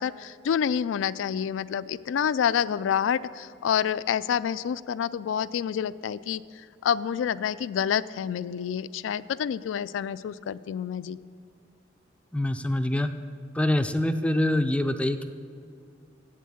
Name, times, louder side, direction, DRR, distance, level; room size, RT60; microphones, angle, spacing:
voice 1, 0.0-6.4 6.8-11.2, left 8 dB, 85° left, 17 dB, 0.3 m, -28 dB
voice 2, 12.3-13.1 13.5-15.2, left 1 dB, 5° left, 9 dB, 0.4 m, -25 dB
8.4 x 7.4 x 7.2 m, 2.4 s
head